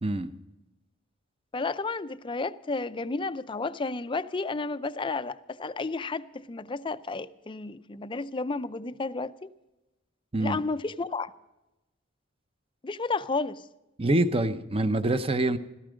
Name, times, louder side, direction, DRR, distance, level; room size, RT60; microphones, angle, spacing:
voice 1, 0.0-0.3 10.3-10.6 14.0-15.6, right 2 dB, 30° right, 0.7 m, -25 dB
voice 2, 1.5-9.5 10.4-11.3 12.8-13.6, left 3 dB, 25° left, 0.5 m, -32 dB
15.5 x 14.0 x 5.1 m
head